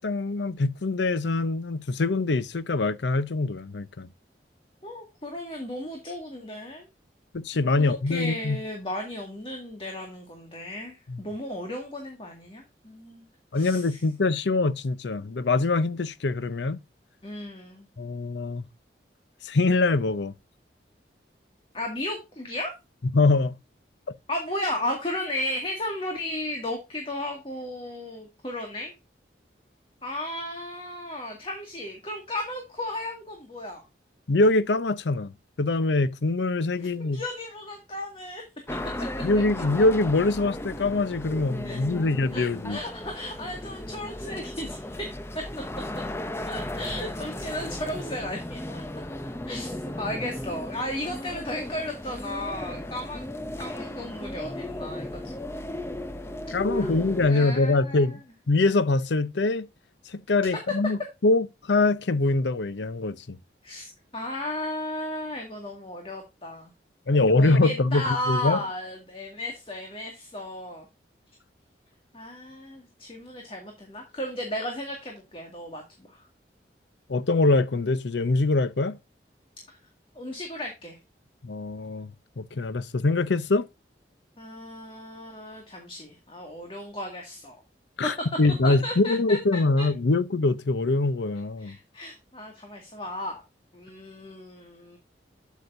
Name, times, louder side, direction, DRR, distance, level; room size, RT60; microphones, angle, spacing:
voice 1, 0.0-4.1 7.3-8.6 11.1-11.2 13.5-16.8 18.0-18.6 19.4-20.3 23.1-23.5 34.3-35.3 35.6-37.2 39.2-42.8 56.5-58.2 58.5-59.7 60.1-63.4 67.1-68.6 77.1-79.0 81.4-82.1 82.4-83.7 88.0-91.8, left 3 dB, 85° left, 0.7 m, -24 dB
voice 2, 4.8-6.9 7.8-13.2 13.5-14.0 17.2-17.9 21.7-22.7 24.3-29.0 30.0-33.8 36.8-38.4 41.6-41.8 42.3-45.1 45.4-45.5 46.5-48.8 49.5-55.8 56.7-58.2 63.6-66.7 67.1-70.9 72.1-76.3 80.2-81.0 84.4-87.6 88.0-89.9 91.6-93.4 93.7-95.0, left 1 dB, 30° left, 2.0 m, -35 dB
sound 1, 38.7-57.3, left 1 dB, 15° left, 0.6 m, -35 dB
8.3 x 8.2 x 2.6 m
head